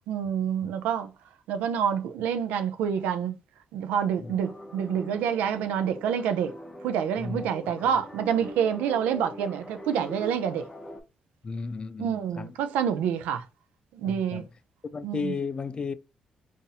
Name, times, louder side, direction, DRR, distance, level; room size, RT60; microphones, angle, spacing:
voice 1, 0.1-1.1 1.5-3.3 3.7-6.5 6.8-10.7 12.0-13.5 13.9-14.4 15.0-15.3, right 8 dB, 90° right, 0.4 m, -27 dB
sound 1, 4.2-11.0, left 1 dB, 10° left, 0.8 m, -43 dB
voice 2, 7.2-7.5 11.4-12.5 14.0-14.5 14.8-15.9, left 4 dB, 35° left, 0.4 m, -34 dB
3.9 x 2.6 x 2.7 m
cardioid pair, 75°, 3 cm